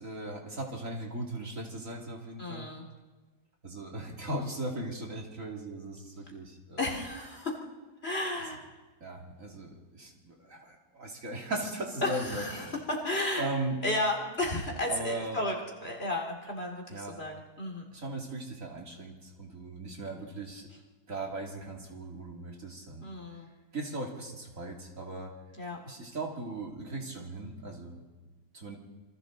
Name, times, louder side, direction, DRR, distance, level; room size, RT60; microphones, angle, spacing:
voice 1, 0.0-2.7 3.6-6.9 8.3-8.4 9.0-12.8 13.3-13.8 14.9-15.4 16.9-17.2 17.9-20.7 21.1-25.3 25.8-28.0 28.5-28.8, right 2 dB, 50° right, 0 dB, 3.0 m, -38 dB
voice 2, 2.4-2.9 6.8-7.6 8.0-8.6 12.0-13.5 13.8-15.6 15.8-17.9 23.0-23.5 25.6-25.8, left 2 dB, 35° left, 1 dB, 2.7 m, -33 dB
27.5 x 24.0 x 3.9 m, 1.3 s
omnidirectional pair, 1.8 m